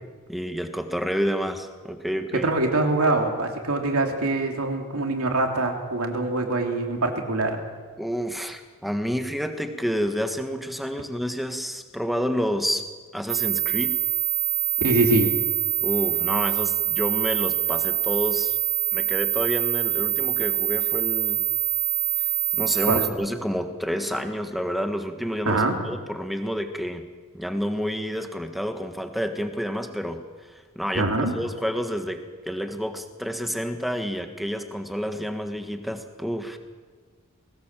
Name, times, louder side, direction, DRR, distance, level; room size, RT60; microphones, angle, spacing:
voice 1, 0.3-2.5 8.0-12.8 13.1-13.9 15.8-18.6 18.9-21.4 22.5-27.0 27.3-30.2 30.7-31.1 31.3-36.6, equal, ahead, 6 dB, 1.5 m, -29 dB
voice 2, 2.3-7.6 14.8-15.3 22.9-23.0 25.4-25.8 30.9-31.3, right 2 dB, 75° right, 2 dB, 3.1 m, -23 dB
sound 1, 13.3-23.1, right 14 dB, 55° right, 3.4 m, -25 dB
21.0 x 18.5 x 7.6 m, 1.5 s
head